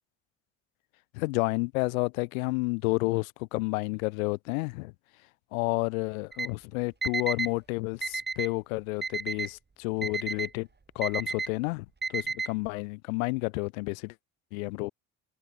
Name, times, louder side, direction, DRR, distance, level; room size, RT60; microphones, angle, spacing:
voice 1, 1.1-4.9 5.5-10.7 10.9-14.1 14.5-14.9, left 26 dB, 90° left, 1.4 m, -30 dB
Alarm, 6.3-6.5 7.0-7.5 8.0-8.5 9.0-9.5 10.0-10.5 11.0-11.5 12.0-12.5, right 4 dB, 25° right, 5.4 m, -32 dB
supercardioid pair, 70°, 40 cm